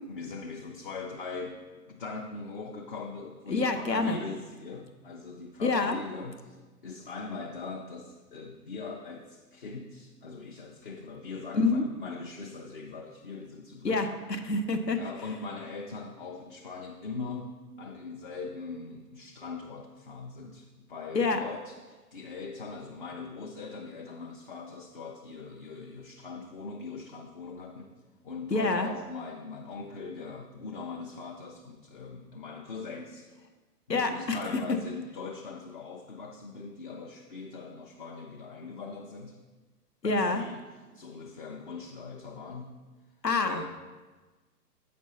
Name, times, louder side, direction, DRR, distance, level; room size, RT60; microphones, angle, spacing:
voice 1, 0.1-1.6 1.9-6.6 6.8-14.0 15.0-27.9 28.2-33.3 33.9-39.4 40.0-40.7 40.9-42.8 43.4-43.7, left 4 dB, 35° left, 0 dB, 0.4 m, -41 dB
voice 2, 3.5-4.2 5.6-6.0 11.5-11.8 13.8-15.0 21.1-21.4 28.5-28.9 33.9-34.6 40.0-40.4 43.2-43.7, left 3 dB, 90° left, 6 dB, 0.8 m, -27 dB
7.5 x 5.2 x 4.1 m, 1.3 s
figure-of-eight pair, 115°, 49 cm